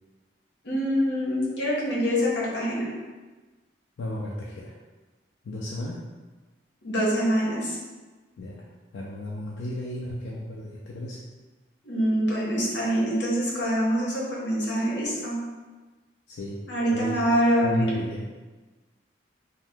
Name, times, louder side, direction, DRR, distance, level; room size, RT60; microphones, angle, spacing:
voice 1, 0.6-2.9 6.8-7.8 11.8-15.4 16.7-18.0, equal, 70° left, -5 dB, 0.9 m, -25 dB
voice 2, 4.0-4.7 5.4-6.1 8.4-8.7 8.9-11.3 16.3-16.7 16.9-17.2 17.6-18.3, left 1 dB, 85° left, -4 dB, 0.4 m, -34 dB
2.7 x 2.1 x 3.4 m, 1.3 s
head